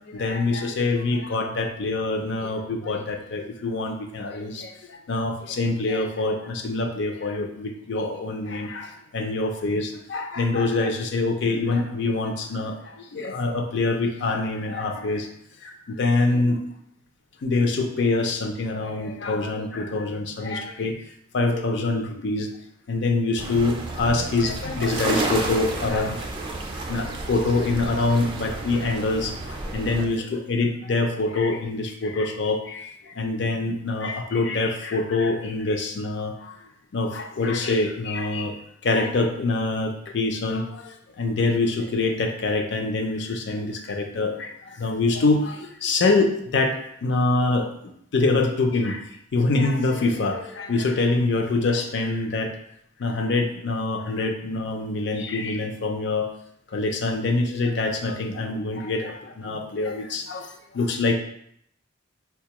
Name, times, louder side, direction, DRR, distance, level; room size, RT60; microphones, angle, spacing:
voice 1, 0.0-15.3 15.6-16.6 17.4-20.9 21.3-22.5 22.9-26.3 26.9-36.6 36.9-38.6 38.8-47.7 48.1-49.1 49.3-52.5 53.0-56.3 56.7-61.2, left 3 dB, 65° left, 4 dB, 0.5 m, -25 dB
sound 1, 23.4-30.0, right 2 dB, 25° right, 0.4 m, -31 dB
4.1 x 2.3 x 2.9 m, 0.71 s
head